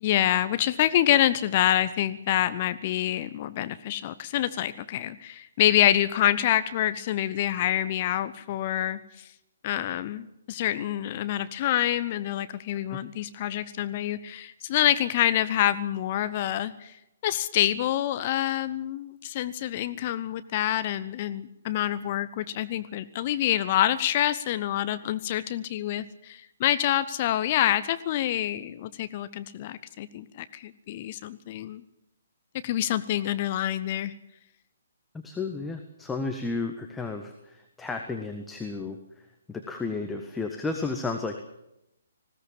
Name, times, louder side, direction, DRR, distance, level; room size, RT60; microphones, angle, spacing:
voice 1, 0.0-9.3 9.6-16.9 17.2-31.8 32.6-34.1, left 12 dB, 35° left, 14 dB, 0.9 m, -26 dB
voice 2, 35.2-41.4, left 3 dB, 5° left, 4 dB, 1.6 m, -33 dB
20.0 x 17.0 x 8.8 m, 0.85 s
figure-of-eight pair, 130°, 0 cm